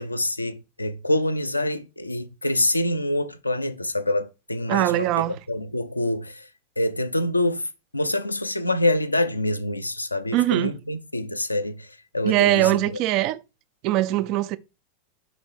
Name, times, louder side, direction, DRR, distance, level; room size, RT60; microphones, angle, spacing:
voice 1, 0.0-5.1 5.5-6.4 6.8-7.7 7.9-11.9 12.1-13.0, left 1 dB, 85° left, 0.5 m, -26 dB
voice 2, 4.7-5.4 10.3-10.8 12.2-13.4 13.8-14.6, right 15 dB, 40° right, 0.3 m, -22 dB
5.3 x 4.1 x 4.5 m
figure-of-eight pair, 90°, 0 cm